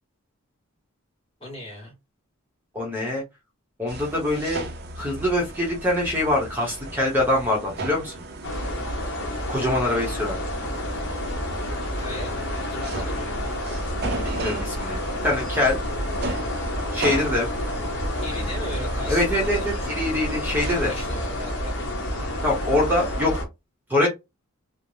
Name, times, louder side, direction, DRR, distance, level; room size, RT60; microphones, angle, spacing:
voice 1, 1.4-1.9 12.0-13.5 18.2-19.9 20.6-21.9, left 1 dB, 25° left, 1.5 m, -38 dB
voice 2, 2.7-3.2 3.8-4.6 4.9-8.1 9.5-10.4 14.4-15.8 16.9-17.5 18.3-18.5 19.1-20.9 22.4-23.3 23.9-24.1, left 1 dB, 10° right, 0.7 m, -24 dB
sound 1, 3.9-21.6, right 2 dB, 45° right, 0.5 m, -37 dB
sound 2, 8.4-23.5, left 1 dB, 55° left, 0.9 m, -29 dB
3.2 x 2.0 x 2.6 m
head